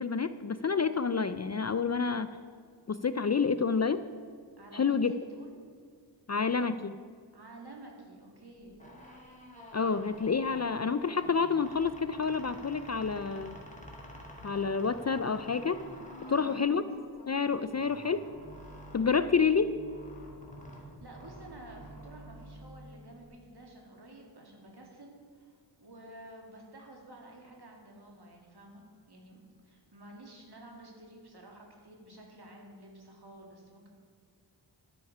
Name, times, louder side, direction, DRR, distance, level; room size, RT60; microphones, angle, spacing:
voice 1, 0.0-2.3 2.9-4.0 4.7-5.1 6.3-6.9 9.7-13.6 14.4-15.9 16.3-16.8 17.3-18.3 18.9-19.8, left 5 dB, 40° left, 12 dB, 0.4 m, -28 dB
voice 2, 4.6-5.6 7.3-8.8 16.2-16.7 21.0-28.8 29.1-33.9, right 1 dB, 55° right, 0 dB, 2.5 m, -51 dB
sound 1, 8.7-23.3, equal, 15° left, 2.3 m, -49 dB
11.5 x 9.8 x 5.5 m, 2.2 s
wide cardioid pair, 80°, 45 cm